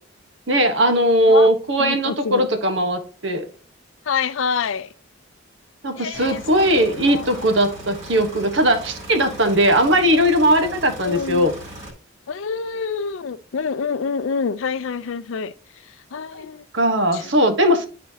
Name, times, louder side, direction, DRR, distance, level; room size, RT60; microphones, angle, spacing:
voice 1, 0.5-3.4 5.8-11.5 16.7-17.9, equal, 60° right, 1.2 m, -18 dB
voice 2, 1.8-2.5 4.1-4.9 6.0-6.4 6.7-7.3 11.0-11.5 12.3-15.5 16.1-16.6 17.1-17.2, left 5 dB, 75° left, 0.5 m, -26 dB
sound 1, 6.1-11.9, right 1 dB, 30° right, 2.7 m, -38 dB
10.5 x 4.1 x 2.8 m
head